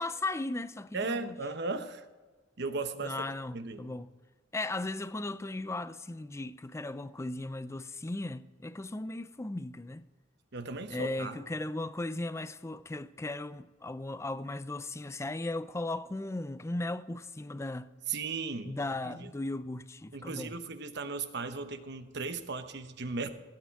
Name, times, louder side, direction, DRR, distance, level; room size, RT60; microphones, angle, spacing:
voice 1, 0.0-1.4 3.0-4.1 4.5-10.1 10.9-17.9 18.7-20.5, left 2 dB, 15° left, 0.4 m, -37 dB
voice 2, 0.9-2.0 2.6-3.3 3.5-3.9 10.5-11.4 18.1-18.8 19.0-19.3 20.1-23.3, right 4 dB, 60° right, 1.0 m, -36 dB
15.5 x 8.7 x 4.7 m
head